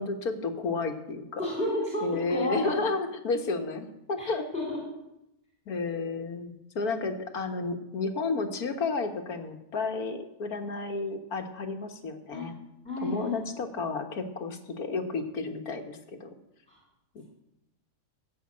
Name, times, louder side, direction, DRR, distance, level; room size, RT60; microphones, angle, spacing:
voice 1, 0.0-1.4 2.0-4.4 5.7-12.5 13.0-16.3 17.2-17.3, left 3 dB, 80° left, 5 dB, 1.9 m, -32 dB
voice 2, 1.4-2.8 4.2-4.8 12.3-12.4 12.8-13.4 16.7-16.8, left 1 dB, 5° left, -4 dB, 3.8 m, -32 dB
15.5 x 7.3 x 8.7 m, 0.90 s
omnidirectional pair, 1.6 m